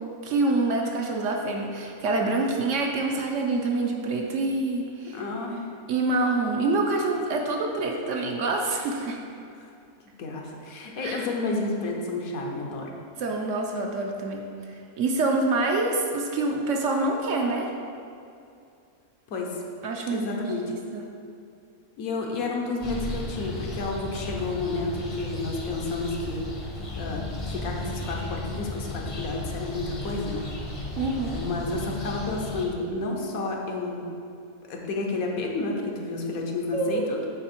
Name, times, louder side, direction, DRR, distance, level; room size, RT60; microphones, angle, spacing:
voice 1, 0.2-5.2 5.9-9.2 11.0-11.3 13.2-17.7 19.8-21.1 31.0-31.4 36.7-37.1, right 2 dB, 65° right, 1 dB, 0.9 m, -26 dB
voice 2, 5.1-5.7 9.6-9.7 10.2-12.9 19.3-19.6 20.1-20.7 22.0-26.4 27.0-30.5 31.3-34.1 34.7-37.2, left 3 dB, 80° left, 0 dB, 1.2 m, -31 dB
sound 1, 22.8-32.7, left 2 dB, 30° left, 0.6 m, -34 dB
8.2 x 3.3 x 4.3 m, 2.5 s
omnidirectional pair, 1.5 m